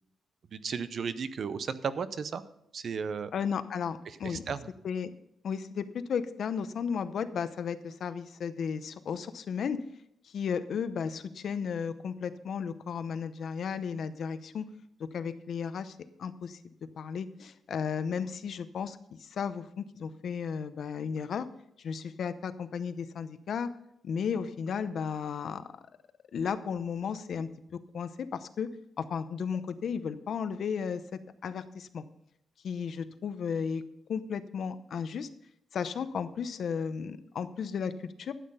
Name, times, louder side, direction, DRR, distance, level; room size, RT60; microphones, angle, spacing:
voice 1, 0.5-2.4 2.7-3.3 4.1-4.7, right 6 dB, 45° right, 13 dB, 0.6 m, -34 dB
voice 2, 3.3-4.4 4.8-5.1 5.4-9.8 10.2-14.7 15.0-21.5 21.8-23.7 24.0-25.7 26.3-27.5 27.9-28.7 29.0-31.0 31.4-32.0 32.6-33.8 34.1-35.3 35.7-38.3, left 6 dB, 55° left, 12 dB, 0.7 m, -34 dB
12.5 x 8.6 x 5.5 m, 0.75 s
wide cardioid pair, 175°, 0 cm